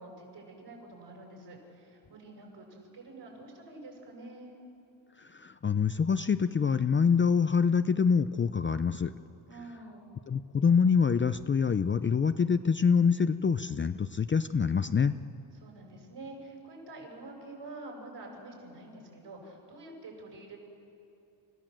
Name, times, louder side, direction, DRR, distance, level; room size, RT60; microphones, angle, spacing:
voice 1, 0.0-4.5 9.5-10.1 15.5-20.6, right 2 dB, 60° right, 0 dB, 7.0 m, -47 dB
voice 2, 5.3-9.1 10.3-15.1, left 6 dB, 25° left, 11 dB, 0.5 m, -25 dB
29.5 x 15.0 x 7.6 m, 2.7 s
cardioid pair, 95°, 47 cm